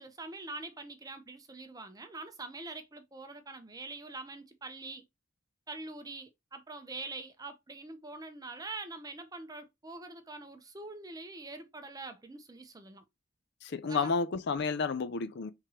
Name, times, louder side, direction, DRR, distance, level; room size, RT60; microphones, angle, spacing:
voice 1, 0.0-5.0 5.7-13.0 13.9-14.1, right 3 dB, 20° right, 0.7 m, -44 dB
voice 2, 13.6-15.5, left 4 dB, 55° left, 0.5 m, -31 dB
4.6 x 3.7 x 3.0 m
head